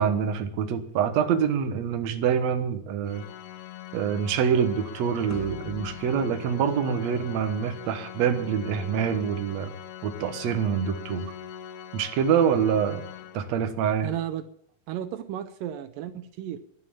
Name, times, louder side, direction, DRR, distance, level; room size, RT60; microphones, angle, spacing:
voice 1, 0.0-3.2 3.9-9.7 10.0-11.3 11.9-13.0 13.3-14.1, right 7 dB, 60° right, 7 dB, 2.1 m, -25 dB
Organ, 3.1-13.9, left 10 dB, 75° left, 1.9 m, -42 dB
sound 1, 5.3-7.8, left 5 dB, 35° left, 1.4 m, -44 dB
voice 2, 14.0-14.4 14.9-16.6, right 11 dB, 80° right, 10 dB, 2.3 m, -33 dB
11.5 x 11.0 x 8.7 m, 0.69 s
omnidirectional pair, 4.0 m